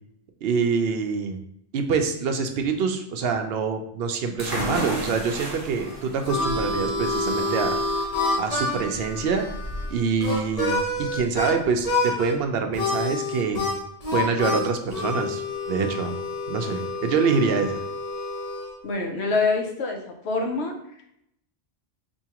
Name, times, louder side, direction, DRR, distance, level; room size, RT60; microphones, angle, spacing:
voice 1, 0.4-1.4 1.7-7.7 8.4-9.5 9.9-13.7 14.1-15.4 15.7-16.1 16.5-17.8, right 5 dB, 70° right, 5 dB, 0.8 m, -25 dB
sound 1, 4.4-11.9, right 1 dB, 20° right, 1.0 m, -34 dB
Harmonica, 5.8-11.6 11.8-12.4 12.7-18.8, left 2 dB, 40° left, 0.7 m, -28 dB
voice 2, 18.8-20.7, left 3 dB, 85° left, 2 dB, 1.0 m, -25 dB
4.6 x 2.7 x 2.9 m, 0.75 s
omnidirectional pair, 1.1 m